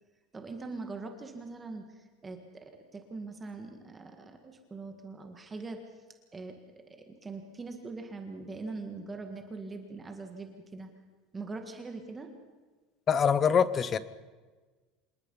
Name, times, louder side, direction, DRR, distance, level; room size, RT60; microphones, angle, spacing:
voice 1, 0.3-1.9 2.2-5.8 6.3-6.6 7.0-10.9 11.3-12.3, right 3 dB, 15° right, 4 dB, 1.8 m, -42 dB
voice 2, 13.1-14.0, left 7 dB, 20° left, 16 dB, 0.8 m, -24 dB
27.0 x 20.0 x 5.5 m, 1.3 s
cardioid pair, 170°, 0 cm